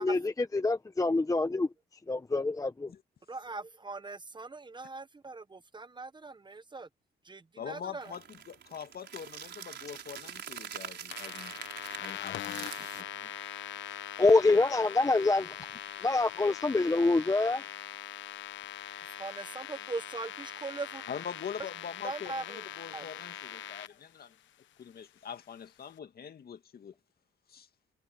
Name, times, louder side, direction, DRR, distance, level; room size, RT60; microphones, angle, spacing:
voice 1, 0.0-1.7 2.1-2.9 14.2-15.5 16.0-17.6, left 3 dB, 15° left, 0.9 m, -26 dB
voice 2, 3.3-6.9 7.2-8.2 19.2-21.0 22.0-22.6 22.9-23.0, right 3 dB, 25° right, 1.1 m, -40 dB
voice 3, 7.6-11.6 12.0-13.3 13.9-14.0 21.1-24.4 24.8-26.9 27.5-27.7, left 7 dB, 50° left, 2.1 m, -44 dB
sound 1, 8.0-13.0, right 8 dB, 60° right, 5.0 m, -44 dB
sound 2, 11.1-23.9, left 12 dB, 70° left, 1.1 m, -42 dB
cardioid pair, 90°, 20 cm